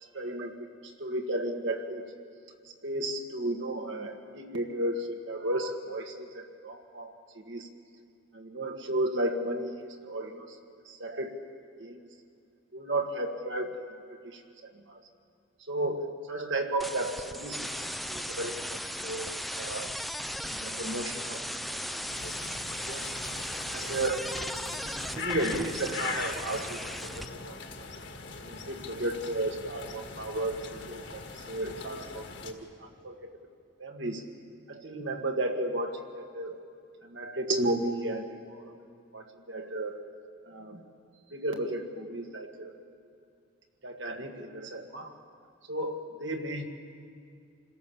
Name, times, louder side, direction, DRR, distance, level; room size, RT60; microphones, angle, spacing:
voice 1, 0.1-0.7 1.0-2.0 2.6-7.7 8.3-10.6 10.9-11.3 11.8-12.1 12.7-13.8 14.2-15.0 15.7-19.9 20.4-21.8 22.2-22.4 22.9-23.1 23.7-24.4 25.1-26.9 27.2-27.6 28.4-33.4 33.8-34.2 34.7-36.6 37.0-38.7 39.1-40.0 40.5-40.8 41.3-42.8 43.8-45.1 45.7-46.6, right 1 dB, 65° right, 3 dB, 1.9 m, -34 dB
sound 1, 16.8-27.2, equal, ahead, 0.4 m, -37 dB
sound 2, 22.1-32.5, left 4 dB, 60° left, 1.8 m, -41 dB
27.5 x 17.0 x 7.2 m, 2.4 s
head